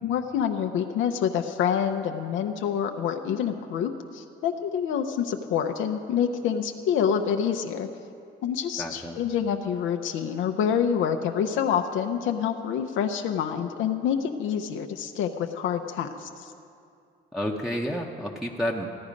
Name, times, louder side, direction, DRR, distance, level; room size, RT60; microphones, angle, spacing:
voice 1, 0.0-7.9 8.4-16.5, left 8 dB, 85° left, 5 dB, 0.6 m, -27 dB
voice 2, 8.8-9.2 17.3-18.9, equal, ahead, -2 dB, 0.8 m, -30 dB
15.0 x 9.6 x 5.2 m, 2.5 s
cardioid pair, 90°, 20 cm